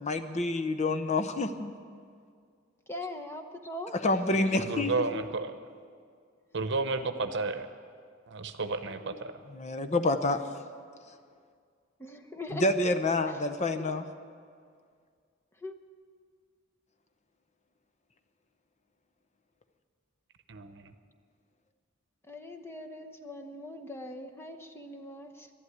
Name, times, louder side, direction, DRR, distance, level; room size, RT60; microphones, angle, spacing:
voice 1, 0.0-1.7 3.9-5.2 9.5-10.4 12.5-14.0, left 2 dB, 35° left, 9 dB, 0.7 m, -28 dB
voice 2, 2.9-3.9 8.9-9.2 12.0-12.7 13.2-13.4 13.8-13.9 15.6-15.8 22.2-25.5, left 1 dB, 15° left, 4 dB, 1.0 m, -41 dB
voice 3, 4.7-5.6 6.5-7.7 8.3-9.3 20.5-20.9, right 3 dB, 65° right, 9 dB, 0.9 m, -32 dB
12.0 x 11.5 x 9.6 m, 2.1 s
head